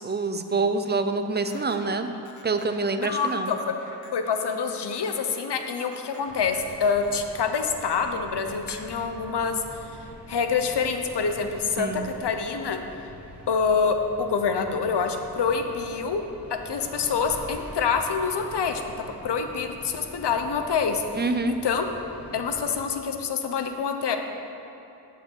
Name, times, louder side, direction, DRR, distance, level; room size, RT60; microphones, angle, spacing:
voice 1, 0.0-2.1 2.4-3.5 11.8-12.1 21.1-21.6, right 3 dB, 25° right, 8 dB, 0.6 m, -26 dB
sound 1, 1.5-9.8, left 3 dB, 45° left, 1.1 m, -48 dB
voice 2, 3.0-3.7 4.1-10.0 10.3-12.8 13.5-16.2 16.5-18.8 19.2-21.9 22.3-24.2, left 5 dB, 75° left, 6 dB, 0.9 m, -26 dB
sound 2, 6.3-22.7, equal, 5° right, 1.9 m, -45 dB
9.1 x 7.1 x 6.3 m, 2.9 s
wide cardioid pair, 100°, 41 cm